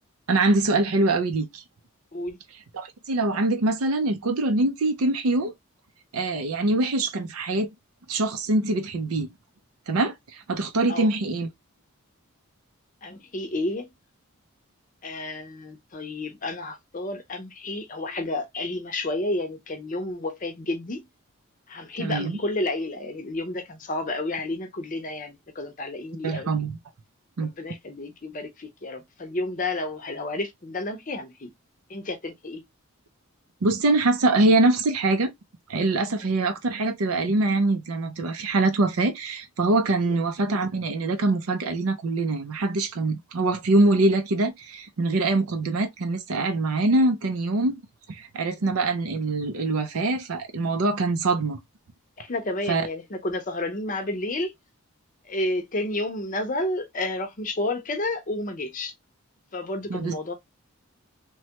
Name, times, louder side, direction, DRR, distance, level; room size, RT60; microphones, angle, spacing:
voice 1, 0.3-1.6 2.7-5.5 6.1-7.7 8.1-9.3 9.9-11.5 22.0-22.4 26.2-26.8 27.4-27.5 33.6-35.3 35.7-47.7 48.1-51.6 52.7-52.8 59.9-60.1, right 2 dB, 75° right, 0.5 m, -24 dB
voice 2, 13.0-13.9 15.0-21.1 21.7-26.5 27.4-31.5 31.9-32.6 40.1-40.2 52.2-54.5 55.2-58.9 59.5-60.3, left 2 dB, 35° left, 0.6 m, -31 dB
3.1 x 2.2 x 2.8 m
head